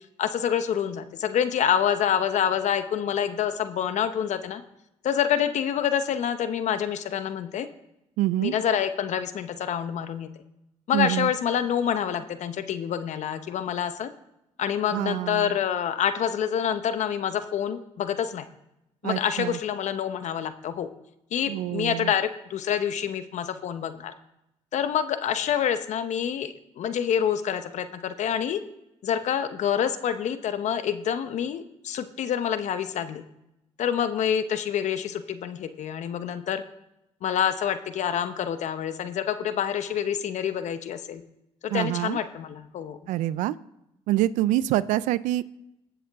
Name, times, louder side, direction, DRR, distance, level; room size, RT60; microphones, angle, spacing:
voice 1, 0.2-4.6 5.0-7.7 8.4-10.3 10.9-14.1 14.6-18.4 19.0-20.9 21.3-24.1 24.7-28.6 29.0-33.2 33.8-36.6 37.2-41.2 41.6-43.0, left 9 dB, 70° left, 10 dB, 0.9 m, -27 dB
voice 2, 8.2-8.5 10.9-11.3 14.9-15.5 19.0-19.6 21.5-22.1 41.7-42.2 43.1-43.6 44.1-45.4, right 15 dB, 85° right, 18 dB, 0.4 m, -26 dB
20.0 x 7.2 x 3.6 m, 0.88 s
supercardioid pair, 60°, 13 cm